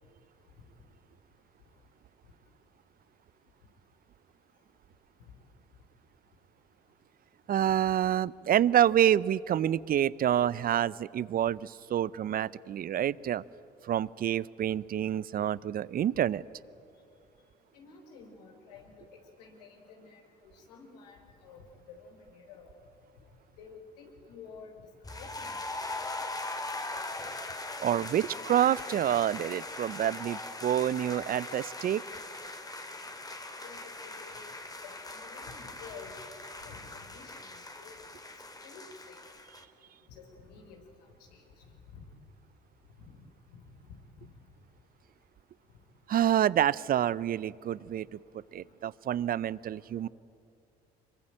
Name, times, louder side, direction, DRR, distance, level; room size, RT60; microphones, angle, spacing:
voice 1, 7.5-13.4 13.8-16.4 27.8-32.0 46.1-48.2 48.5-50.1, right 10 dB, 45° right, 22 dB, 0.7 m, -27 dB
voice 2, 17.7-21.6 21.9-22.7 23.6-25.7 33.6-34.4 34.8-38.0 38.6-39.2 40.1-40.8 41.3-41.7 41.9-42.0 43.0-43.1 43.9-44.0, left 5 dB, 80° left, 2 dB, 4.1 m, -51 dB
sound 1, 25.0-39.6, left 2 dB, 20° left, 2.7 m, -40 dB
26.0 x 22.5 x 9.0 m, 2.5 s
hypercardioid pair, 55°, 20 cm